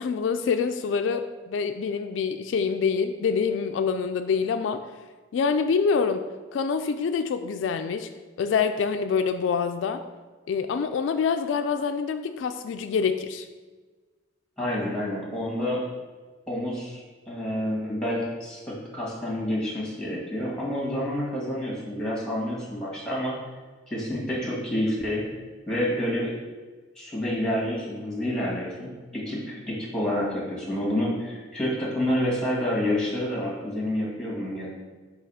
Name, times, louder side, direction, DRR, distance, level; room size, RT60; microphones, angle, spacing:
voice 1, 0.0-4.8 5.3-6.2 6.5-8.1 8.4-10.0 10.5-13.5, left 5 dB, 75° left, 8 dB, 0.3 m, -26 dB
voice 2, 14.6-15.8 16.5-23.3 23.9-25.2 25.7-26.3 27.0-34.7, left 1 dB, 5° left, -4 dB, 1.7 m, -28 dB
6.4 x 2.9 x 5.5 m, 1.4 s
head